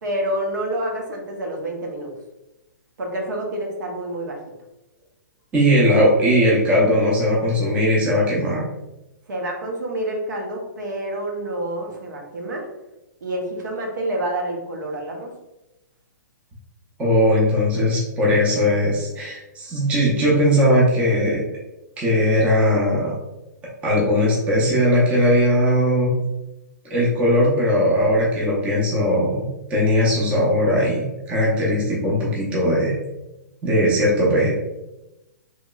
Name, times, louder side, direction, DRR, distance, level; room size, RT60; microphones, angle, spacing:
voice 1, 0.0-2.1 3.0-4.4 9.3-12.7 13.2-15.3, right 1 dB, 75° right, 0 dB, 0.8 m, -28 dB
voice 2, 5.5-8.6 17.0-21.4 22.0-23.1 23.8-26.1 26.9-32.9 33.6-34.6, equal, 10° right, -5 dB, 0.5 m, -19 dB
3.0 x 2.8 x 2.2 m, 0.98 s
hypercardioid pair, 165°, 10 cm